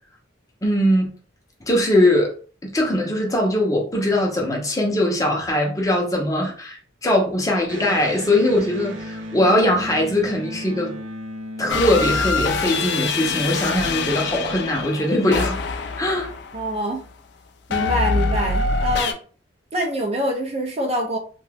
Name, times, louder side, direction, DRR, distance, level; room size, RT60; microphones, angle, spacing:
voice 1, 0.6-1.1 1.7-2.4 2.7-11.0 11.6-15.6 16.0-16.3, left 1 dB, 15° left, 0.6 m, -21 dB
Electric guitar, 7.7-13.1, equal, 80° right, 0.6 m, -35 dB
sound 1, 11.7-16.8 17.7-19.1, left 4 dB, 60° left, 0.4 m, -24 dB
voice 2, 16.5-17.0 17.7-19.1 19.7-21.2, equal, 30° right, 0.5 m, -25 dB
2.7 x 2.2 x 3.3 m
head